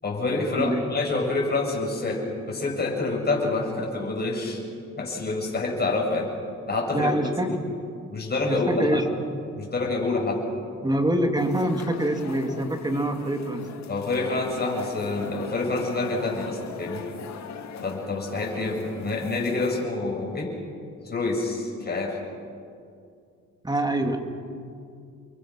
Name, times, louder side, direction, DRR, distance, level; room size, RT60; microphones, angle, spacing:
voice 1, 0.0-4.6 5.0-6.3 6.7-7.6 8.1-9.0 9.6-10.4 13.9-17.1 17.8-20.5 21.0-22.2 24.0-24.2, left 3 dB, 30° left, 0 dB, 7.3 m, -27 dB
voice 2, 6.9-7.5 8.5-9.0 10.8-13.6 23.6-24.2, right 1 dB, 15° right, 5 dB, 2.7 m, -25 dB
sound 1, 11.3-19.9, left 7 dB, 65° left, 2.0 m, -40 dB
30.0 x 23.0 x 6.2 m, 2.4 s
cardioid pair, 90°, 30 cm